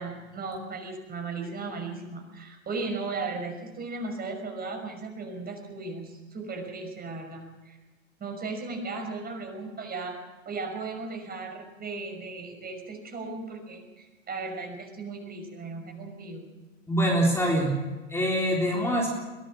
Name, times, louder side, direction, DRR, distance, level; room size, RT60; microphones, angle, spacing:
voice 1, 0.0-7.8 8.2-10.2 10.5-16.5, right 3 dB, 25° right, 4 dB, 5.8 m, -36 dB
voice 2, 16.9-17.8 18.1-19.1, equal, 5° left, -2 dB, 3.7 m, -24 dB
23.0 x 17.5 x 6.4 m, 1.2 s
hypercardioid pair, 105°, 40 cm